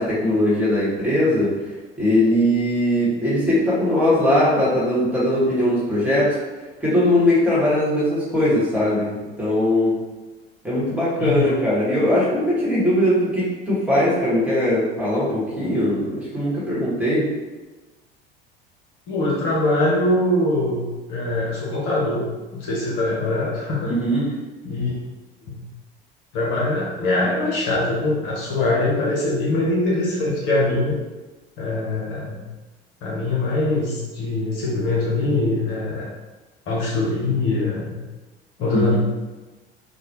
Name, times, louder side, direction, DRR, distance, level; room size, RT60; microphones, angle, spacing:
voice 1, 0.0-1.5 2.0-6.3 6.8-9.9 10.6-17.2 23.8-24.3 38.7-39.0, left 1 dB, 5° right, -9 dB, 1.3 m, -20 dB
voice 2, 11.2-11.6 19.1-22.2 22.5-23.9 24.6-24.9 25.5-25.6 26.3-31.0 31.6-32.4 33.0-36.1 36.7-38.0 38.6-39.0, left 2 dB, 50° left, -5 dB, 0.8 m, -22 dB
3.0 x 2.1 x 2.8 m, 1.2 s
figure-of-eight pair, 65°, 29 cm